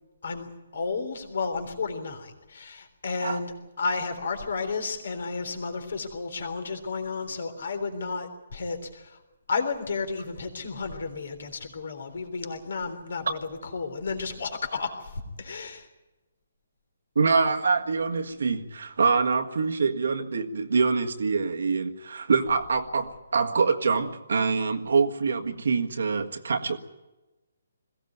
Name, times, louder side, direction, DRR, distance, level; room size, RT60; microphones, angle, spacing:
voice 1, 0.2-9.2 9.5-15.9, left 4 dB, 60° left, 7 dB, 3.6 m, -32 dB
voice 2, 17.1-26.8, right 4 dB, 65° right, 5 dB, 1.7 m, -25 dB
21.5 x 16.5 x 9.4 m, 1.1 s
figure-of-eight pair, 140°, 0 cm